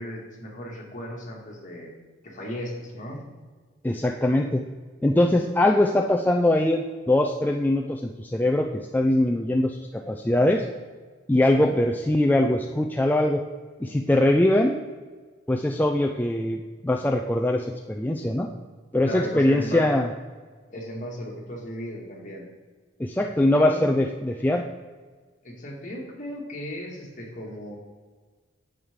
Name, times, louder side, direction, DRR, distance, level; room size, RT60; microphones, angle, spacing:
voice 1, 0.0-1.9 2.2-3.3 11.5-11.7 19.0-19.9 20.7-22.5 23.5-23.9 25.4-27.8, equal, 45° left, -2 dB, 2.1 m, -36 dB
voice 2, 3.8-4.6 5.0-10.6 11.3-13.4 13.8-14.8 15.5-18.5 18.9-20.1 23.0-24.7, left 1 dB, 10° left, 2 dB, 0.4 m, -22 dB
8.8 x 8.0 x 3.7 m, 1.4 s
head